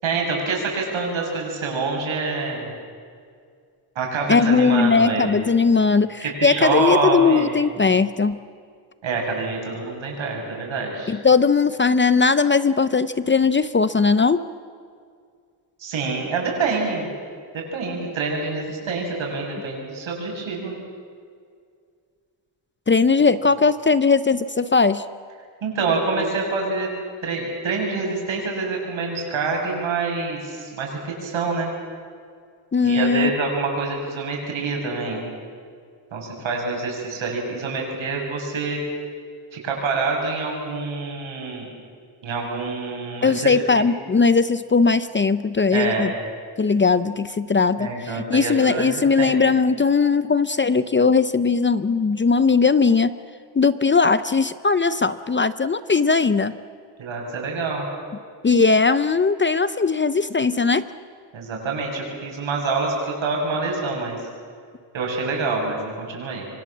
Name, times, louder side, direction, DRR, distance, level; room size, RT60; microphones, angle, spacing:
voice 1, 0.0-2.7 3.9-5.4 6.2-7.5 9.0-11.1 15.8-17.1 17.5-20.7 25.6-26.9 27.2-31.7 32.8-35.2 36.1-38.8 39.5-41.6 42.2-43.8 45.7-46.1 47.8-49.4 57.0-57.9 61.3-64.2 64.9-66.5, right 3 dB, 75° right, 0 dB, 7.8 m, -26 dB
voice 2, 4.3-8.4 11.1-14.4 22.9-25.0 32.7-33.3 43.2-46.1 46.6-53.1 53.6-56.5 58.4-60.8, left 4 dB, 25° left, 14 dB, 0.6 m, -19 dB
27.0 x 24.5 x 7.4 m, 2.2 s
wide cardioid pair, 140°, 47 cm